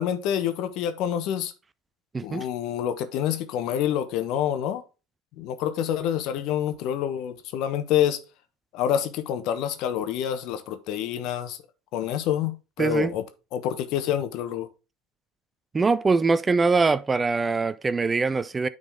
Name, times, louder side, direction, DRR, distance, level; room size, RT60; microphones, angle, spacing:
voice 1, 0.0-1.5 2.2-4.8 5.4-8.2 8.7-11.6 11.9-13.2 13.5-14.7, left 10 dB, 60° left, 1.1 m, -27 dB
voice 2, 2.1-2.5 12.8-13.1 15.7-18.7, right 4 dB, 20° right, 0.5 m, -23 dB
10.0 x 4.1 x 3.6 m
hypercardioid pair, 75°, 0 cm